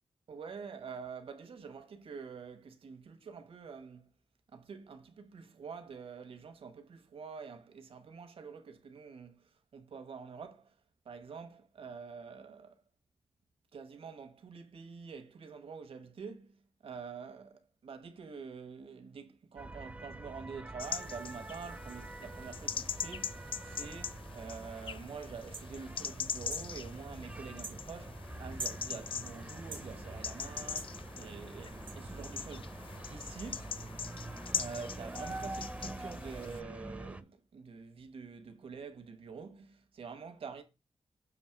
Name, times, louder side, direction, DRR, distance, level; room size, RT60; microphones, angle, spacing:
voice 1, 0.3-4.2 4.5-10.8 11.0-12.8 13.7-32.8 33.1-33.8 34.5-40.6, right 5 dB, 70° right, 1.2 m, -47 dB
sound 1, 19.6-37.2, right 2 dB, 15° right, 0.5 m, -45 dB
sound 2, 20.8-36.6, left 7 dB, 60° left, 0.4 m, -42 dB
sound 3, 25.5-25.7 26.5-26.7 27.6-27.8 28.6-28.8 29.7-29.9 30.8-30.9 31.9-32.0, right 4 dB, 55° right, 0.7 m, -42 dB
7.2 x 2.9 x 5.9 m
wide cardioid pair, 100°, 10 cm